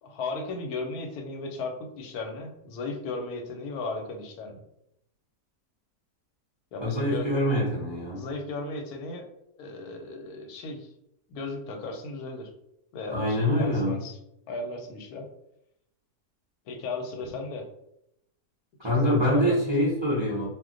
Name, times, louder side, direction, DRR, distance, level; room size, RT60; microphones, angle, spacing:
voice 1, 0.0-4.6 6.7-7.3 8.1-9.3 9.6-10.9 11.3-12.5 12.9-14.2 14.5-15.3 16.7-17.7 18.8-19.6, left 3 dB, 85° left, 3 dB, 1.1 m, -36 dB
voice 2, 6.8-8.2 13.1-14.0 18.8-20.4, equal, 35° right, -7 dB, 0.4 m, -25 dB
2.4 x 2.2 x 3.7 m, 0.81 s
omnidirectional pair, 1.6 m